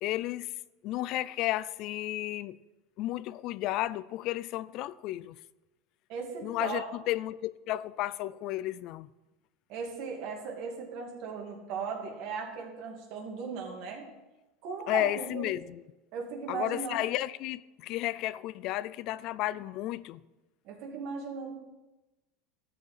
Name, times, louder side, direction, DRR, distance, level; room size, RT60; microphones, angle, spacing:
voice 1, 0.0-0.5 0.8-2.6 3.0-5.4 6.4-9.1 14.9-15.8 16.5-20.2, left 15 dB, 50° left, 0.3 m, -33 dB
voice 2, 6.1-6.8 9.7-14.1 14.6-15.5 16.1-17.0 20.6-21.5, right 5 dB, 55° right, 2.5 m, -37 dB
13.0 x 5.0 x 7.8 m
supercardioid pair, 145°, 0 cm